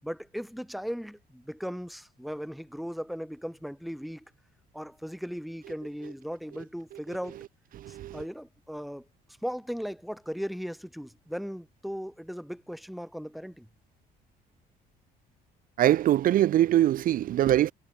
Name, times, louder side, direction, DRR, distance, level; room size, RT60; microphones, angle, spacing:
voice 1, 0.0-4.2 4.7-7.4 7.9-9.1 9.4-13.7, equal, ahead, 7.6 m, -37 dB
voice 2, 7.8-8.2 15.8-17.7, right 12 dB, 55° right, 0.6 m, -22 dB
cardioid pair, 110°, 17 cm